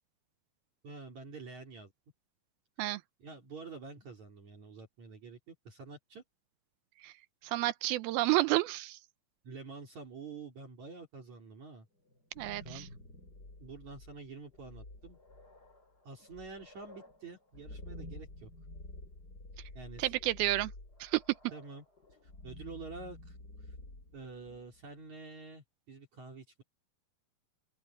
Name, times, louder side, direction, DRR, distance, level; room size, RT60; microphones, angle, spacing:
voice 1, 0.8-1.9 3.2-6.2 9.4-11.9 12.6-12.9 13.6-15.2 16.0-18.5 19.7-20.1 21.5-21.8 22.4-23.7 24.1-26.6, right 4 dB, 50° right, 4.7 m, -48 dB
voice 2, 7.4-9.0 12.4-12.8 20.0-20.7 21.0-21.2, right 17 dB, 85° right, 2.6 m, -30 dB
sound 1, 12.1-24.9, left 2 dB, 25° left, 6.5 m, -50 dB
open air
omnidirectional pair, 4.3 m